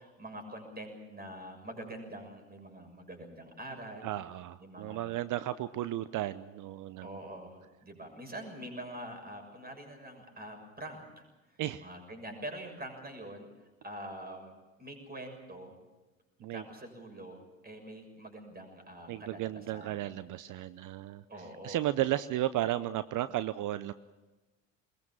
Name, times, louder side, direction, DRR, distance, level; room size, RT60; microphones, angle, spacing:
voice 1, 0.0-4.1 4.6-5.1 7.0-14.5 14.8-15.8 16.5-20.0 21.3-21.8, right 1 dB, 25° right, 4 dB, 6.6 m, -45 dB
voice 2, 4.0-7.2 11.6-11.9 16.4-16.6 19.1-21.2 21.6-23.9, right 14 dB, 50° right, 15 dB, 0.7 m, -34 dB
21.5 x 21.0 x 7.4 m, 1.2 s
hypercardioid pair, 60°, 39 cm